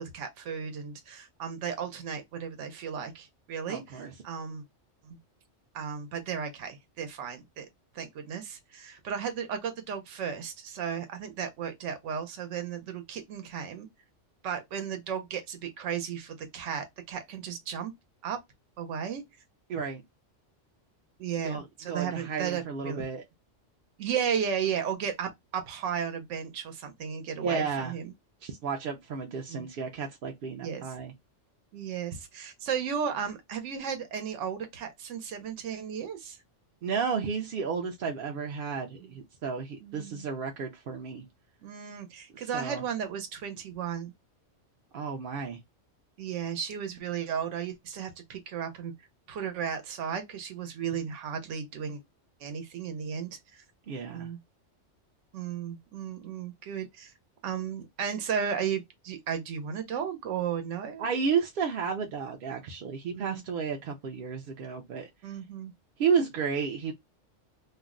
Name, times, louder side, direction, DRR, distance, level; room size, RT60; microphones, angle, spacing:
voice 1, 0.0-4.6 5.0-5.2 5.7-7.7 7.9-13.9 14.4-17.9 18.2-18.4 18.8-19.2 21.2-23.0 24.0-28.1 29.5-29.6 30.6-30.9 31.7-36.4 39.0-39.1 39.8-40.3 41.6-44.1 46.2-48.9 49.3-52.0 52.4-53.6 54.1-54.4 55.3-57.1 57.4-61.1 63.1-63.4 65.2-65.7, right 7 dB, 80° right, 1.0 m, -34 dB
voice 2, 3.7-4.1 19.7-20.0 21.4-23.2 27.4-27.9 28.4-31.1 36.8-41.2 42.5-42.8 44.9-45.6 53.9-54.3 61.0-65.1 66.0-66.9, right 6 dB, 60° right, 0.6 m, -32 dB
2.5 x 2.1 x 3.6 m
omnidirectional pair, 1.2 m